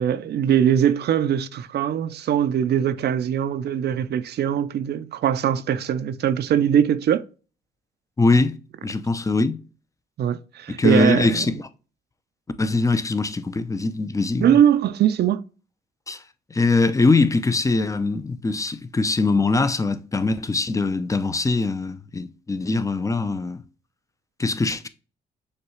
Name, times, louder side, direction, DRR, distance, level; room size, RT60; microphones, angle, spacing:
voice 1, 0.0-7.2 10.2-11.4 14.4-15.4, right 9 dB, 60° right, 0.5 m, -21 dB
voice 2, 8.2-8.6 8.8-9.6 10.8-11.7 12.6-14.5 16.1-16.2 16.5-23.6 24.4-24.9, left 3 dB, 15° left, 0.5 m, -22 dB
6.5 x 2.3 x 3.0 m
cardioid pair, 75°, 19 cm